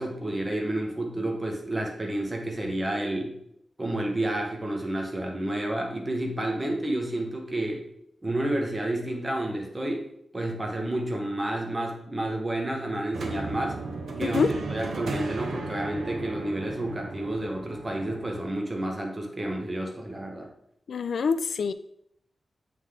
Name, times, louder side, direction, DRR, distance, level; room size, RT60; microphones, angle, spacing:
voice 1, 0.0-3.3 3.8-7.9 8.2-13.8 14.2-20.5, right 1 dB, 20° right, 1 dB, 0.9 m, -30 dB
sound 1, 13.1-18.4, right 3 dB, 75° right, 0.8 m, -35 dB
voice 2, 20.9-21.7, left 5 dB, 80° left, 12 dB, 0.3 m, -25 dB
7.6 x 3.4 x 3.7 m, 0.75 s
wide cardioid pair, 145°, 0 cm